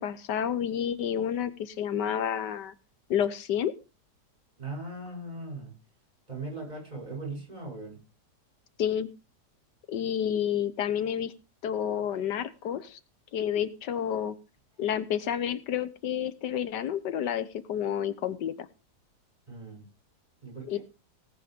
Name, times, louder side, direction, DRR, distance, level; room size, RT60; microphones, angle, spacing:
voice 1, 0.0-2.7 3.1-3.7 8.8-9.1 9.9-11.3 11.6-13.0 13.3-14.3 14.8-18.5 20.7-20.8, left 9 dB, 90° left, 14 dB, 1.6 m, -30 dB
voice 2, 4.6-5.7 6.3-8.0 19.5-19.8 20.4-20.8, right 2 dB, 25° right, 0 dB, 8.3 m, -39 dB
18.0 x 7.6 x 5.2 m, 0.31 s
omnidirectional pair, 1.8 m